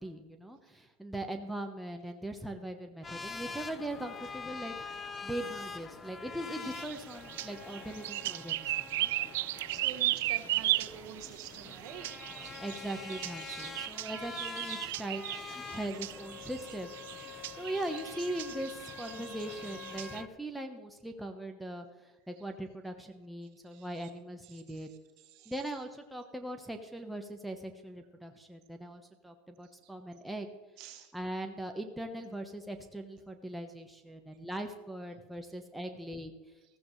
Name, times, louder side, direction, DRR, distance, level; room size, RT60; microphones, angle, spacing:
voice 1, 0.0-9.1 12.6-16.9 17.2-21.9 22.3-24.9 25.5-30.5 31.1-36.4, right 1 dB, ahead, 3 dB, 1.1 m, -40 dB
sound 1, 3.0-20.3, left 5 dB, 20° left, 0.7 m, -45 dB
sound 2, 6.6-20.2, right 16 dB, 80° right, 0.3 m, -36 dB
voice 2, 9.7-12.6 14.8-15.3 15.6-15.8 16.4-16.5 17.2-17.5 23.7-24.1 24.4-25.6 29.6-29.9 30.8-31.1, right 8 dB, 60° right, 3 dB, 1.9 m, -50 dB
15.0 x 14.0 x 3.2 m, 1.2 s
supercardioid pair, 125°, 0 cm